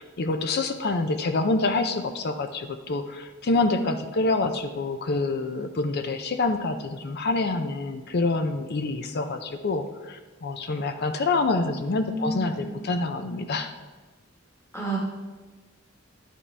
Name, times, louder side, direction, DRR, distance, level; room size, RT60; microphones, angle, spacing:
voice 1, 0.0-13.7, left 3 dB, 50° left, 8 dB, 0.5 m, -27 dB
voice 2, 12.1-12.7 14.7-15.0, right 1 dB, 15° left, -4 dB, 1.4 m, -30 dB
11.0 x 7.6 x 3.3 m, 1.3 s
head